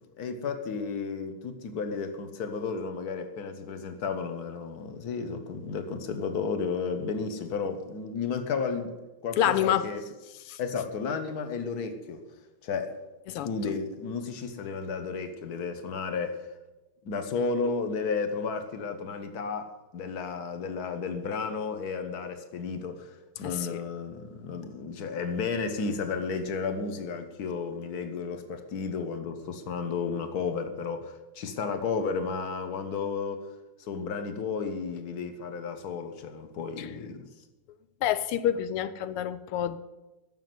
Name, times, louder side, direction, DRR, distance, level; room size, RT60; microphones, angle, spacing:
voice 1, 0.0-8.9 9.2-10.0 10.6-12.2 12.6-12.9 13.4-16.5 17.0-33.5 33.8-37.2, left 5 dB, 50° left, 7 dB, 1.6 m, -33 dB
voice 2, 9.4-9.9 10.3-10.6 13.3-13.7 23.4-23.8 36.8-36.9 38.0-39.8, left 11 dB, 90° left, 13 dB, 1.6 m, -28 dB
11.5 x 7.2 x 9.5 m, 1.1 s
omnidirectional pair, 2.4 m